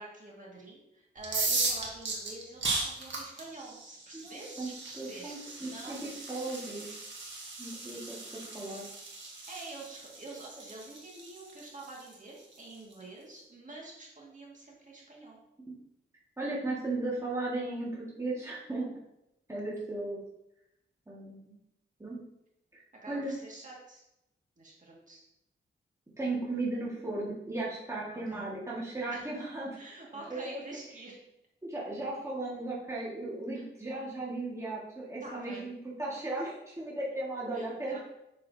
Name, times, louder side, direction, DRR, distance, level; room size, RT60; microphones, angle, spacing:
voice 1, 0.0-6.1 8.6-8.8 9.5-15.4 23.0-24.0 24.6-25.2 28.1-28.5 29.1-29.5 29.8-31.2 33.5-33.6 35.2-35.7 37.5-38.0, right 2 dB, 40° right, -3 dB, 2.0 m, -47 dB
sound 1, 1.2-12.9, right 3 dB, 70° right, 1.6 m, -37 dB
voice 2, 4.1-6.9 7.6-8.9 15.7-15.8 16.4-18.9 19.5-20.2 21.1-21.6 22.0-22.2 22.7-23.3 26.2-30.0 30.3-30.6 31.6-38.0, right 2 dB, 15° right, -6 dB, 1.8 m, -36 dB
7.4 x 6.2 x 2.8 m, 0.84 s
wide cardioid pair, 95°, 20 cm